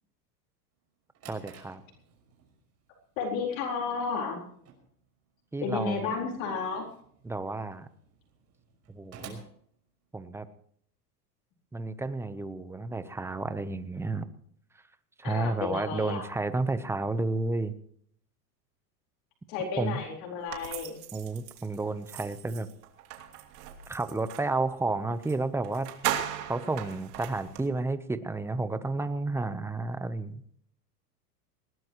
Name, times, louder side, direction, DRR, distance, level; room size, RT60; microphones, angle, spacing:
Drawer open or close, 0.8-10.5, right 6 dB, 30° right, 6.0 m, -54 dB
voice 1, 1.3-1.8 5.5-6.0 7.2-7.9 8.9-9.4 10.1-10.5 11.7-14.3 15.2-17.7 19.8-20.0 21.1-22.7 23.9-25.9 26.5-30.4, right 3 dB, 5° right, 12 dB, 0.8 m, -31 dB
voice 2, 3.2-4.4 5.6-6.8 15.2-16.2 19.5-21.0, left 5 dB, 55° left, 1 dB, 4.4 m, -32 dB
sound 1, 20.5-24.5 25.2-25.4 25.6-27.7, right 11 dB, 70° right, 3.0 m, -37 dB
20.5 x 19.0 x 3.1 m, 0.65 s
supercardioid pair, 140°, 48 cm